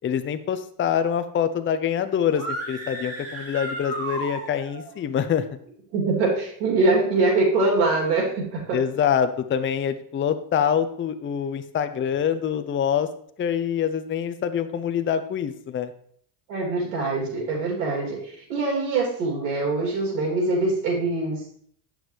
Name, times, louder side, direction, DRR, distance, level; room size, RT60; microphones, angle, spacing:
voice 1, 0.0-5.4 8.7-13.1 13.4-15.9, left 8 dB, 25° left, 10 dB, 0.5 m, -25 dB
sound 1, 2.3-4.9, right 2 dB, 30° right, 2.5 m, -33 dB
voice 2, 5.9-8.8 16.5-21.4, right 3 dB, 90° right, -3 dB, 3.2 m, -23 dB
9.1 x 6.3 x 3.3 m, 0.63 s
supercardioid pair, 90°, 50 cm